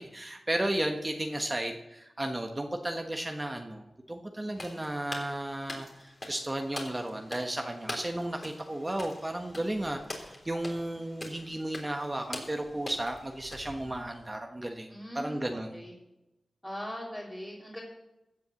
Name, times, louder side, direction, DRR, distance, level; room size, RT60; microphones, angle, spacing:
voice 1, 0.0-15.8, right 1 dB, 25° right, 4 dB, 1.3 m, -34 dB
voice 2, 4.4-4.8 14.9-15.9 16.6-17.8, equal, 10° left, -5 dB, 2.9 m, -41 dB
sound 1, 4.5-14.3, left 1 dB, 35° left, 3.5 m, -44 dB
15.5 x 6.9 x 7.2 m, 0.94 s
cardioid pair, 60°, 0 cm